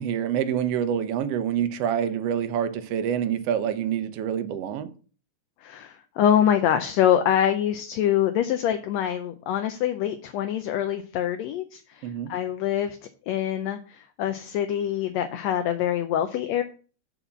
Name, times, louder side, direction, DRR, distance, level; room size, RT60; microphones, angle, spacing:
voice 1, 0.0-4.9 12.0-12.3, right 9 dB, 70° right, 1.6 m, -26 dB
voice 2, 5.6-13.0 13.3-16.6, left 10 dB, 75° left, 1.7 m, -25 dB
8.4 x 4.2 x 6.9 m
omnidirectional pair, 3.4 m